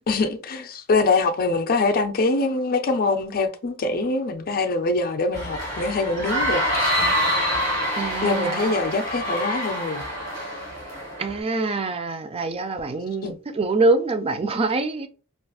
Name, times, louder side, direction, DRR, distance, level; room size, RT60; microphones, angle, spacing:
voice 1, 0.1-6.9 8.2-10.0 13.2-13.4, left 3 dB, 40° left, 0.4 m, -24 dB
sound 1, 5.3-11.4, equal, 15° left, 1.5 m, -26 dB
voice 2, 7.9-8.7 11.2-15.1, right 3 dB, 25° right, 0.3 m, -25 dB
3.8 x 2.4 x 2.3 m
head